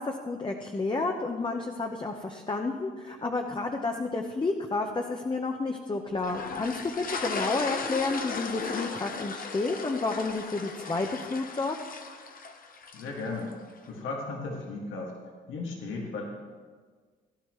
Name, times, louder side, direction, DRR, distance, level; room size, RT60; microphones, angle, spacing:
voice 1, 0.0-11.7, left 3 dB, 25° left, 3 dB, 1.0 m, -31 dB
sound 1, 6.2-13.5, left 5 dB, 45° left, 1.0 m, -37 dB
voice 2, 12.9-13.5 13.9-15.2 15.5-16.4, left 3 dB, 85° left, -1 dB, 2.1 m, -35 dB
17.0 x 11.0 x 3.2 m, 1.5 s
cardioid pair, 90°, 20 cm